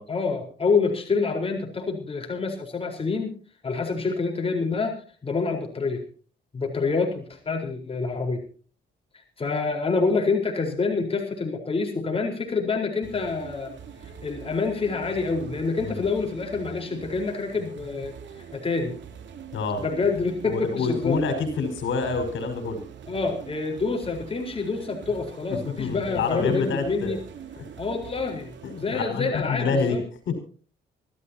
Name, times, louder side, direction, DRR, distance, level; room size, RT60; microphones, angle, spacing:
voice 1, 0.0-3.4 3.6-4.9 5.2-6.0 6.5-8.4 9.4-13.7 14.2-18.1 18.5-18.9 19.8-21.2 23.1-27.2 27.8-30.0, left 4 dB, 30° left, 2 dB, 4.6 m, -27 dB
sound 1, 13.0-29.0, right 7 dB, 65° right, 3.3 m, -43 dB
voice 2, 19.5-19.8 20.5-22.8 25.5-27.2 28.6-30.0 30.3-30.4, left 4 dB, 75° left, 6 dB, 5.3 m, -27 dB
24.5 x 15.0 x 2.9 m, 0.41 s
cardioid pair, 90°, 20 cm